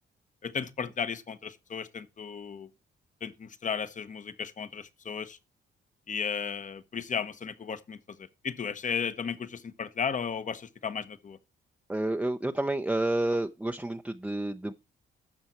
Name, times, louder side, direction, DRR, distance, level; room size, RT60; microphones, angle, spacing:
voice 1, 0.4-2.7 3.2-5.4 6.1-11.4, left 6 dB, 40° left, 1.1 m, -35 dB
voice 2, 11.9-14.7, right 1 dB, 5° right, 0.7 m, -29 dB
12.5 x 7.1 x 4.4 m
cardioid pair, 85°, 20 cm